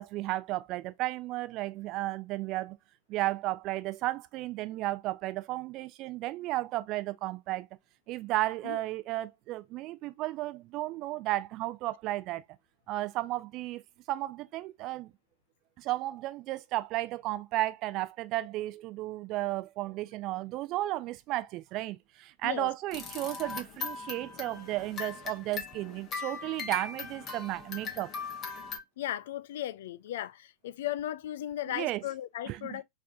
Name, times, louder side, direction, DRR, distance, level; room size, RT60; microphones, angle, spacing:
voice 1, 0.0-2.7 3.1-7.7 8.1-12.4 12.9-13.8 14.1-15.1 15.8-28.1 31.7-32.0 32.5-32.8, right 17 dB, 40° right, 0.5 m, -34 dB
sound 1, 22.9-28.8, left 5 dB, 30° left, 1.4 m, -39 dB
voice 2, 29.0-32.8, left 12 dB, 55° left, 0.4 m, -36 dB
4.9 x 3.5 x 2.4 m
figure-of-eight pair, 90°, 0 cm